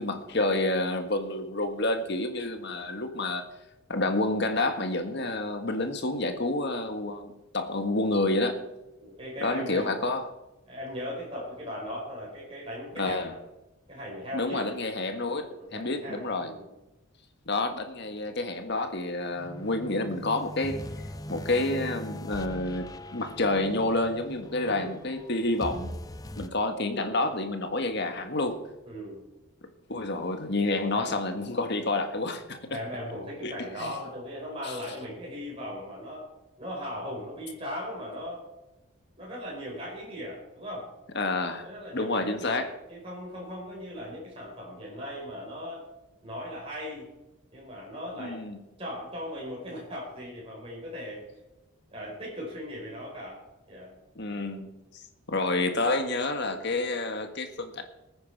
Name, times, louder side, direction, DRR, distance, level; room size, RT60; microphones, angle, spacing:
voice 1, 0.0-3.4 3.9-8.6 9.4-10.3 13.0-13.3 14.3-16.5 17.5-20.8 21.3-26.0 26.4-28.6 29.9-32.8 33.4-33.5 33.8-33.9 34.6-34.7 41.2-41.7 41.9-42.7 48.2-48.6 54.2-55.0 55.3-57.8, left 2 dB, 50° left, 7 dB, 1.6 m, -29 dB
voice 2, 9.0-9.9 10.7-13.4 13.9-14.8 15.6-16.7 24.6-25.0 28.8-29.2 30.9-31.1 32.7-36.2 36.6-38.4 39.2-40.9 41.6-45.8 46.2-47.1 47.5-48.4 48.8-51.2 51.9-53.4 53.7-53.9, equal, 25° right, -4 dB, 4.8 m, -38 dB
sound 1, 19.4-26.5, left 1 dB, 15° left, 0.5 m, -41 dB
20.0 x 9.6 x 4.8 m, 0.96 s
head